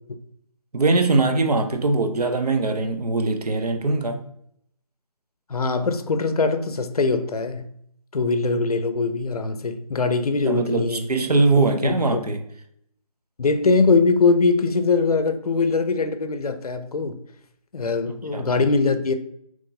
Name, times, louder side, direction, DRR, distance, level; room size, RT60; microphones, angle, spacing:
voice 1, 0.7-4.2 10.4-12.4 18.1-18.5, right 3 dB, 85° right, 0.6 m, -22 dB
voice 2, 5.5-7.7 8.1-11.1 11.8-12.2 13.4-17.2 17.7-19.1, left 4 dB, 75° left, 0.5 m, -22 dB
3.0 x 2.7 x 3.7 m
figure-of-eight pair, 175°, 20 cm